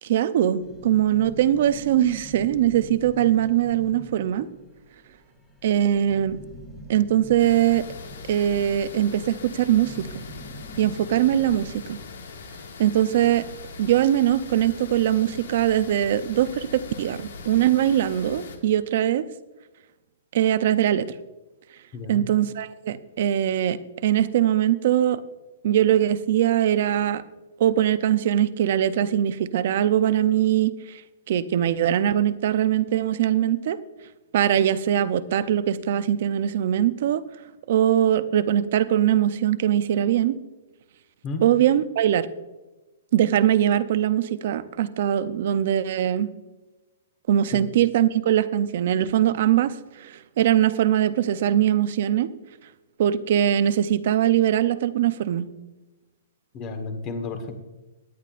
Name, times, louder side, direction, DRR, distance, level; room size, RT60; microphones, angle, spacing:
voice 1, 0.0-4.5 5.6-6.4 6.9-7.9 8.3-10.2 10.8-12.0 12.8-13.5 13.8-19.3 20.3-21.1 22.1-23.8 24.0-25.2 25.6-27.2 27.6-31.0 31.3-33.8 34.3-37.2 37.7-40.3 41.4-42.3 43.1-46.3 47.3-52.3 53.0-55.5, right 11 dB, 50° right, 14 dB, 0.6 m, -21 dB
sound 1, 0.6-12.5, equal, 5° left, 2.3 m, -44 dB
sound 2, 7.4-18.6, left 4 dB, 80° left, 1.9 m, -41 dB
voice 2, 56.5-57.6, left 3 dB, 25° left, 7 dB, 1.3 m, -32 dB
17.5 x 11.0 x 2.5 m, 1.1 s
hypercardioid pair, 170°, 0 cm